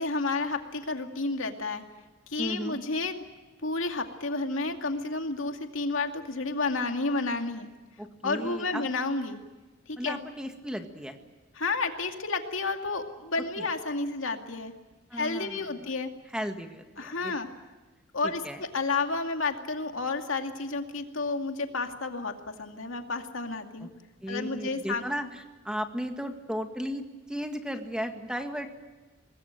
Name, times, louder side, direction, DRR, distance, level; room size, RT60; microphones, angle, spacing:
voice 1, 0.0-1.8 2.3-3.3 3.6-7.7 8.2-9.4 9.9-10.2 11.6-14.7 15.1-16.1 17.0-17.5 18.1-23.9 24.3-25.0, left 3 dB, 80° left, 5 dB, 2.4 m, -31 dB
voice 2, 2.4-2.8 8.0-8.8 10.0-11.2 13.6-13.7 15.1-15.9 16.3-17.4 18.2-18.6 23.8-23.9 24.2-28.7, equal, 5° right, 5 dB, 1.9 m, -35 dB
24.5 x 20.5 x 9.0 m, 1.2 s
head